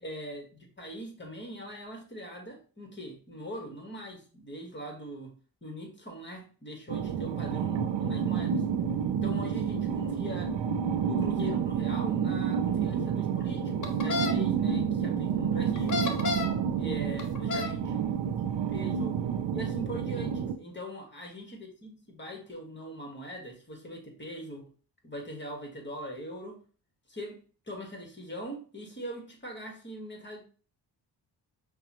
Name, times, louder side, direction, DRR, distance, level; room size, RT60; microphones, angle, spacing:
voice 1, 0.0-5.3 5.6-8.6 9.1-10.6 11.0-16.1 16.8-19.2 19.5-24.7 25.0-26.6 27.1-27.4 27.7-30.4, equal, 25° left, 2 dB, 1.5 m, -41 dB
sound 1, 6.9-20.5, right 7 dB, 85° right, 0.5 m, -29 dB
sound 2, 13.8-14.3 15.8-16.6 17.2-17.7, left 3 dB, 45° left, 0.9 m, -30 dB
5.7 x 2.3 x 2.9 m, 0.38 s
cardioid pair, 50°, 43 cm